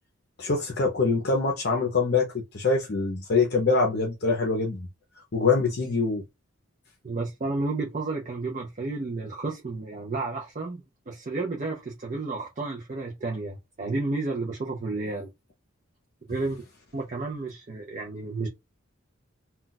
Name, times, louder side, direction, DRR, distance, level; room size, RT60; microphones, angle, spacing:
voice 1, 0.4-4.9 5.3-6.2, left 4 dB, 50° left, 0.6 m, -24 dB
voice 2, 7.0-15.3 16.3-16.6 16.9-18.5, right 3 dB, 35° right, 0.5 m, -31 dB
2.3 x 2.2 x 3.9 m
head